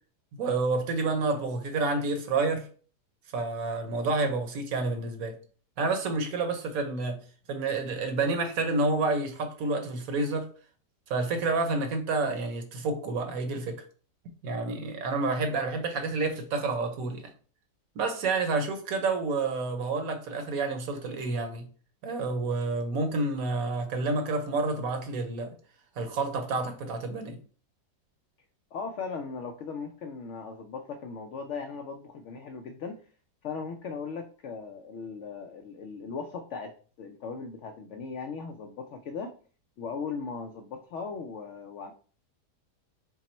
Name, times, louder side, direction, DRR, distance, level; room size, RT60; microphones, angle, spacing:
voice 1, 0.4-2.7 3.3-5.4 5.8-7.2 7.5-10.5 11.1-13.8 14.4-17.2 18.0-21.7 22.0-25.5 26.0-27.4, right 3 dB, 65° right, 1.1 m, -29 dB
voice 2, 28.7-33.0 33.4-39.3 39.8-41.9, left 5 dB, 80° left, 0.6 m, -38 dB
5.8 x 2.0 x 4.3 m
omnidirectional pair, 1.8 m